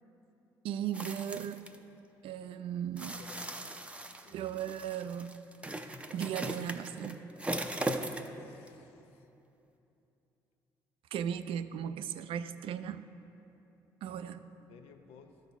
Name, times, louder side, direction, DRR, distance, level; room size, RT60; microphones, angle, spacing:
voice 1, 0.6-1.7 2.2-3.2 4.3-5.3 6.1-7.2 11.1-13.0 14.0-14.4, right 9 dB, 65° right, 12 dB, 0.4 m, -37 dB
sound 1, 0.9-1.8 3.0-8.4 8.7-8.8, right 1 dB, 10° right, 0.6 m, -38 dB
voice 2, 3.2-3.8 4.2-4.4 8.4-9.3 14.1-14.2 14.7-15.3, left 6 dB, 75° left, 6 dB, 0.6 m, -57 dB
13.0 x 5.3 x 4.1 m, 2.9 s
hypercardioid pair, 55°, 10 cm